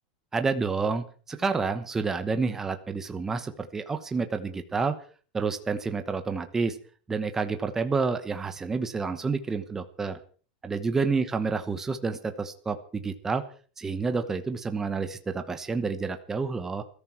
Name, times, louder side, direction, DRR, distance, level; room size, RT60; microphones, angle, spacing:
voice 1, 0.3-5.0 5.3-6.8 7.1-10.2 10.6-13.4 13.8-16.8, right 4 dB, 10° right, 8 dB, 1.1 m, -29 dB
21.0 x 13.5 x 4.5 m, 0.40 s
supercardioid pair, 180°, 5 cm